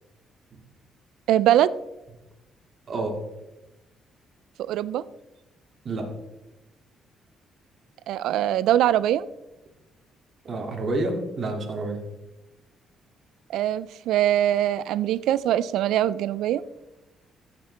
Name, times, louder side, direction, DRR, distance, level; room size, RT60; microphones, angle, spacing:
voice 1, 1.3-1.7 4.7-5.0 8.1-9.2 13.5-16.6, right 12 dB, 85° right, 18 dB, 0.3 m, -22 dB
voice 2, 2.9-3.2 5.8-6.1 10.4-12.0, right 2 dB, 50° right, 2 dB, 2.2 m, -29 dB
15.0 x 6.7 x 3.3 m, 0.99 s
cardioid pair, 90°, 0 cm